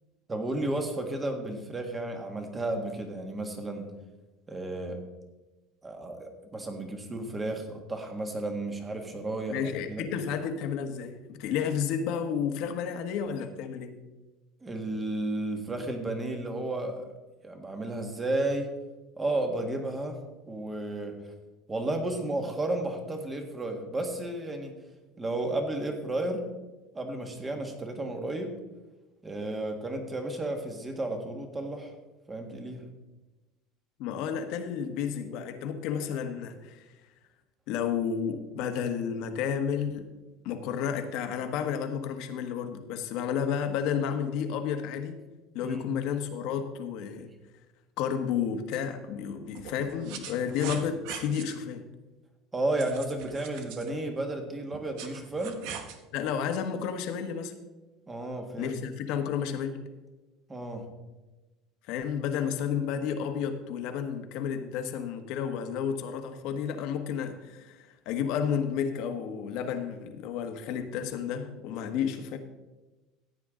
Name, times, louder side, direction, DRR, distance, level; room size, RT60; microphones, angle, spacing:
voice 1, 0.3-3.9 4.5-5.0 5.8-10.0 14.6-17.1 17.4-18.7 19.2-20.2 20.5-21.2 21.7-24.7 25.2-26.5 26.9-28.5 29.2-31.9 32.3-32.8 45.6-45.8 52.5-55.6 58.1-58.8 60.5-60.9, right 2 dB, 15° right, 4 dB, 1.7 m, -33 dB
voice 2, 9.5-14.0 34.0-36.9 37.7-40.1 40.4-45.2 45.5-47.3 48.0-51.8 56.1-57.5 58.6-59.8 61.9-72.4, left 7 dB, 65° left, 6 dB, 1.3 m, -31 dB
sound 1, 48.7-48.8 49.6-51.6 52.8-53.9 54.7-56.0, right 8 dB, 70° right, 1.2 m, -41 dB
15.0 x 8.8 x 3.8 m, 1.1 s
cardioid pair, 140°, 0 cm